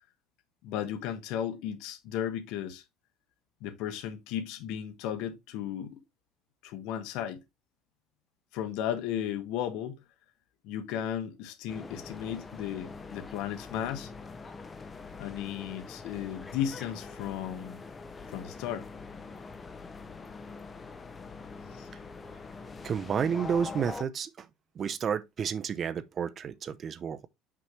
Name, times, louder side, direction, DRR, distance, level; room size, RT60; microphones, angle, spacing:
voice 1, 0.6-2.8 3.6-6.0 6.6-7.4 8.5-10.0 10.6-14.1 15.2-17.8 18.3-18.9 21.7-21.9, left 10 dB, 70° left, 1.3 m, -35 dB
sound 1, 11.7-24.0, left 4 dB, 15° left, 0.7 m, -44 dB
voice 2, 22.8-24.5 24.8-27.3, right 7 dB, 30° right, 0.6 m, -31 dB
6.0 x 5.7 x 3.1 m
cardioid pair, 160°, 0 cm